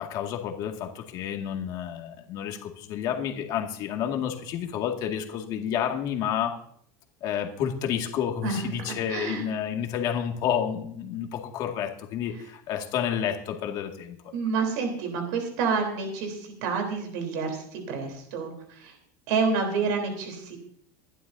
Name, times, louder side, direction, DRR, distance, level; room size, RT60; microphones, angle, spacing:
voice 1, 0.0-6.5 7.2-14.2, left 9 dB, 40° left, 3 dB, 2.0 m, -30 dB
voice 2, 8.4-9.4 14.3-18.9 19.3-20.6, right 5 dB, 65° right, 3 dB, 3.6 m, -29 dB
24.0 x 11.5 x 2.7 m, 0.66 s
supercardioid pair, 160°, 10 cm